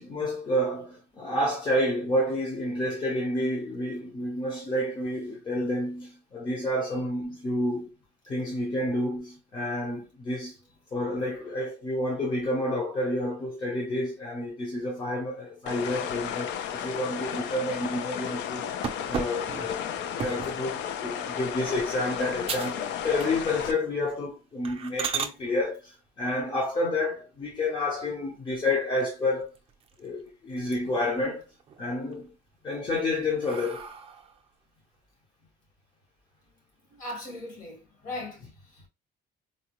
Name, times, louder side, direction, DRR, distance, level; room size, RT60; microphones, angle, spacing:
voice 1, 0.0-7.9 8.3-10.6 10.9-18.8 19.1-29.5 30.0-31.5 31.8-32.3 32.6-33.9, left 1 dB, 25° left, 0.7 m, -29 dB
sound 1, 15.7-23.7, left 9 dB, 70° left, 0.5 m, -33 dB
sound 2, 18.8-20.6 21.2-21.5 21.9-22.0 22.4-22.8 23.1-23.6 24.0-24.1 24.6-25.3 27.4-28.0 28.5-28.6 29.0-29.1 29.4-30.2 30.5-31.1 31.5-32.2 32.7-34.4, right 7 dB, 30° right, 0.5 m, -36 dB
voice 2, 36.9-38.9, left 1 dB, 45° left, 1.6 m, -39 dB
4.0 x 2.2 x 3.0 m
cardioid pair, 175°, 19 cm